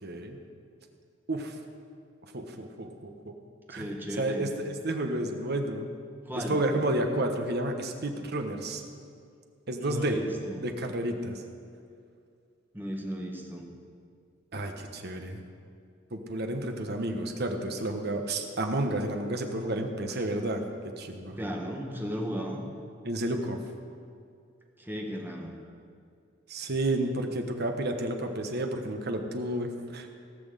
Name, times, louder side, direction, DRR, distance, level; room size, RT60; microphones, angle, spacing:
voice 1, 0.0-0.4 1.3-1.5 2.3-3.3 3.7-5.9 6.3-8.8 9.7-10.2 10.6-11.4 14.5-15.4 16.1-20.6 21.0-21.4 23.0-23.6 26.5-30.1, right 1 dB, 55° right, 4 dB, 1.2 m, -31 dB
voice 2, 3.7-4.5 6.2-6.6 9.8-10.7 12.7-13.7 21.3-22.6 24.8-25.5, equal, 10° right, 0 dB, 1.6 m, -35 dB
18.0 x 6.2 x 7.6 m, 2.3 s
head